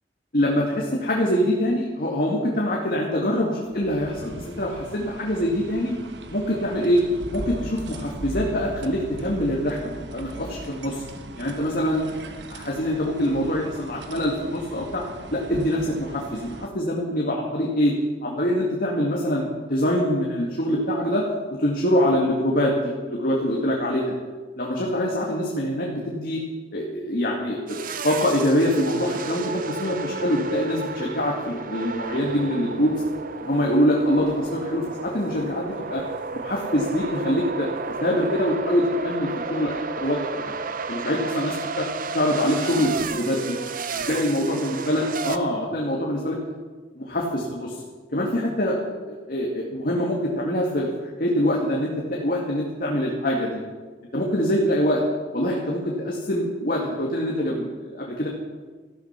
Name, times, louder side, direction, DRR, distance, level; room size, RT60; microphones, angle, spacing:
voice 1, 0.3-6.0 6.3-7.0 7.3-11.0 11.4-15.0 15.3-17.9 18.2-21.2 21.6-22.7 23.0-24.1 24.6-26.4 26.7-32.9 33.4-36.0 36.3-37.7 38.0-40.5 40.9-41.9 42.1-43.6 43.9-46.4 47.0-47.7 48.1-48.8 49.1-53.6 54.1-55.0 55.3-58.3, equal, 55° left, -2 dB, 2.1 m, -24 dB
sound 1, 3.6-16.7, right 1 dB, 90° right, 1.1 m, -39 dB
sound 2, 27.7-45.4, right 4 dB, 55° right, 0.8 m, -32 dB
14.5 x 13.0 x 5.8 m, 1.4 s
head